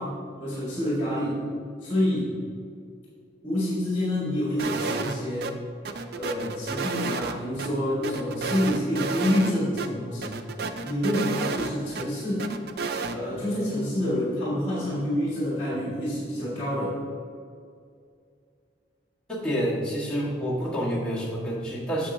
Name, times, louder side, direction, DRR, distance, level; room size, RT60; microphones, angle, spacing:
voice 1, 0.0-1.4 1.8-2.3 3.4-5.5 6.1-10.3 10.8-12.5 13.1-17.0, left 1 dB, 25° left, -8 dB, 1.8 m, -27 dB
sound 1, 4.6-5.2 5.4-5.5 5.9-7.7 8.0-9.5 9.8-9.9 10.2-12.1 12.4-13.2, right 4 dB, 55° right, 0.4 m, -31 dB
voice 2, 19.3-22.1, equal, 5° left, -8 dB, 1.5 m, -28 dB
8.0 x 6.7 x 2.7 m, 2.3 s
head